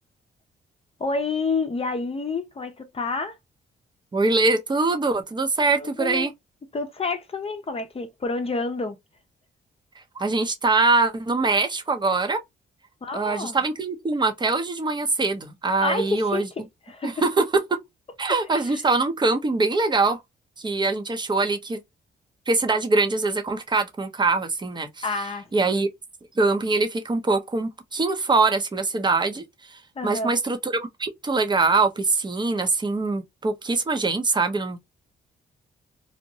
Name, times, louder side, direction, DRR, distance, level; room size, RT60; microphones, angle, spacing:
voice 1, 1.0-3.4 5.8-6.3 6.7-9.0 13.0-13.6 15.8-16.5 16.9-17.2 18.6-18.8 25.0-25.7 30.0-30.3, left 3 dB, 30° left, 0.7 m, -28 dB
voice 2, 4.1-6.3 10.2-12.4 13.1-16.5 17.0-17.4 18.2-20.2 20.6-21.8 22.5-25.1 25.5-25.9 26.4-34.8, right 3 dB, 25° right, 0.7 m, -23 dB
2.7 x 2.2 x 2.6 m
cardioid pair, 75°, 19 cm